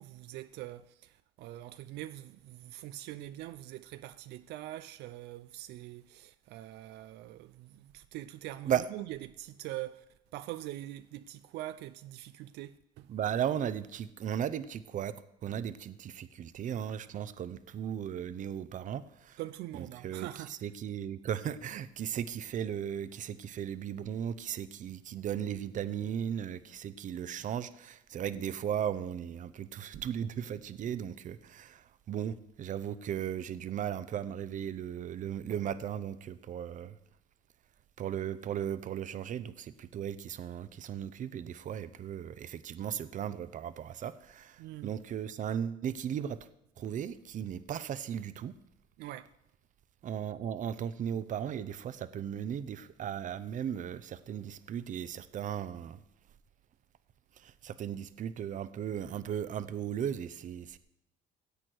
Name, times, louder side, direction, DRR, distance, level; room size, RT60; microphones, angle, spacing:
voice 1, 0.0-10.0 10.3-13.1 19.4-20.5 44.6-44.9 49.0-49.3, right 15 dB, 85° right, 0.5 m, -43 dB
voice 2, 13.1-15.2 15.4-19.4 19.7-37.0 38.0-46.4 46.8-48.5 50.0-56.0 57.4-60.8, right 9 dB, 50° right, 0.7 m, -36 dB
16.5 x 8.3 x 4.6 m
cardioid pair, 110°, 17 cm